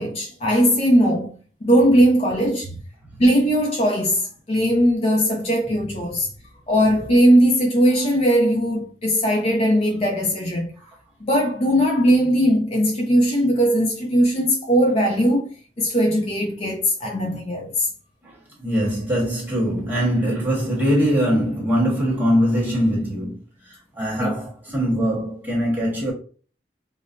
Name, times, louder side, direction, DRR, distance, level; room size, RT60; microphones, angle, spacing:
voice 1, 0.0-1.3 1.6-2.7 3.2-6.3 6.7-10.7 11.2-15.5 15.8-17.9 24.2-24.3, equal, 35° left, 0.4 m, -19 dB
voice 2, 18.2-23.4 23.7-26.1, equal, 10° right, 1.4 m, -22 dB
4.9 x 2.0 x 2.6 m
head